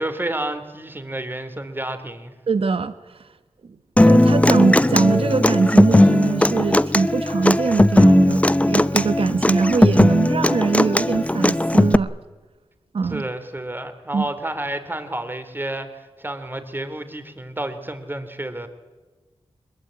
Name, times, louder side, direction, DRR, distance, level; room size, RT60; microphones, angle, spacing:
voice 1, 0.0-2.3 13.0-18.7, right 1 dB, 20° right, 9 dB, 3.1 m, -30 dB
voice 2, 2.5-3.3 4.0-12.1 12.9-13.2 14.1-14.3, right 4 dB, 65° right, 11 dB, 1.1 m, -22 dB
Human voice / Acoustic guitar, 4.0-12.0, left 1 dB, 15° left, 0.9 m, -17 dB
22.0 x 21.5 x 8.8 m, 1.3 s
cardioid pair, 60°, 10 cm